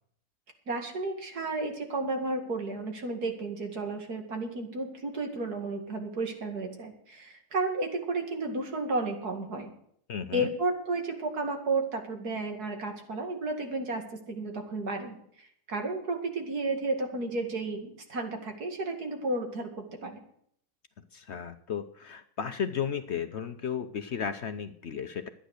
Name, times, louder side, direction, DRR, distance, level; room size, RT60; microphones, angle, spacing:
voice 1, 0.7-9.7 10.3-14.0 14.3-20.2, right 2 dB, 75° right, 3 dB, 2.7 m, -32 dB
voice 2, 10.1-10.5 21.1-25.2, left 7 dB, 55° left, 9 dB, 0.9 m, -34 dB
12.5 x 10.0 x 6.5 m, 0.66 s
omnidirectional pair, 1.6 m